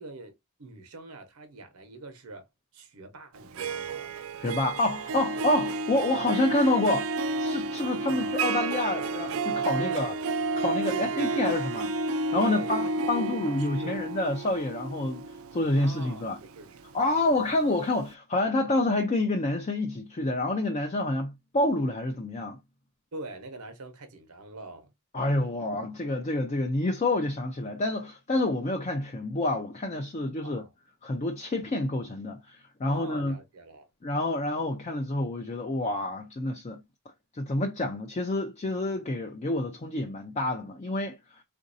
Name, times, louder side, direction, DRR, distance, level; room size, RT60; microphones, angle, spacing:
voice 1, 0.0-2.5 2.7-4.2 8.0-8.3 9.7-10.2 10.9-11.5 12.4-14.0 15.7-16.8 23.1-24.9 30.4-30.7 32.9-33.9, right 3 dB, 85° right, 0.9 m, -43 dB
Harp, 3.4-17.3, right 3 dB, 65° right, 0.3 m, -31 dB
voice 2, 4.4-7.1 7.4-10.2 10.6-16.4 16.9-22.6 25.1-30.6 31.0-33.4 34.0-36.8 37.3-41.4, left 2 dB, 30° left, 0.4 m, -28 dB
3.9 x 2.6 x 2.6 m
head